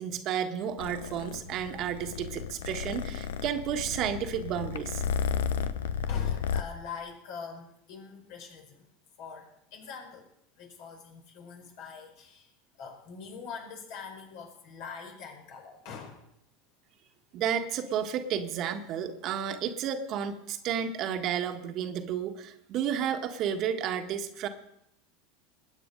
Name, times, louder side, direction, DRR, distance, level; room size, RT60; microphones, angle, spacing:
voice 1, 0.0-5.0 17.3-24.5, right 8 dB, 50° right, 6 dB, 1.6 m, -32 dB
Purr, 0.8-6.6, left 7 dB, 75° left, 0.8 m, -33 dB
voice 2, 6.1-8.9 9.2-10.3 10.5-12.5 12.8-16.3, left 5 dB, 60° left, 2 dB, 5.0 m, -44 dB
21.0 x 9.0 x 5.3 m, 0.76 s
hypercardioid pair, 85°, 0 cm